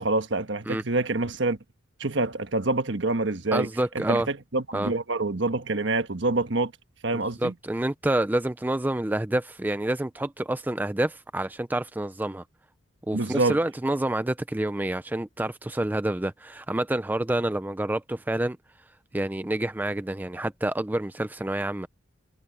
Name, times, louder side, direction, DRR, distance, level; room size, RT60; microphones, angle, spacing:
voice 1, 0.0-1.6 2.0-3.7 3.9-6.7 7.0-7.5 13.1-13.6, right 2 dB, 60° right, 1.4 m, -26 dB
voice 2, 3.5-4.3 4.7-4.9 7.1-12.4 13.1-18.6 19.1-21.9, right 1 dB, 10° right, 0.4 m, -28 dB
head